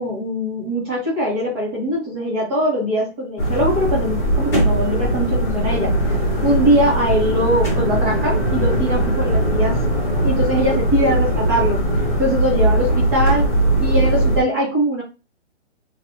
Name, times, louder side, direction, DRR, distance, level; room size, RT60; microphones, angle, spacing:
voice 1, 0.0-6.0 6.4-9.8 10.2-11.8 12.2-13.5 13.8-15.0, equal, 20° right, -5 dB, 1.2 m, -21 dB
sound 1, 3.4-14.4, right 1 dB, 10° left, 0.6 m, -19 dB
3.2 x 2.7 x 2.7 m, 0.29 s
hypercardioid pair, 155°, 37 cm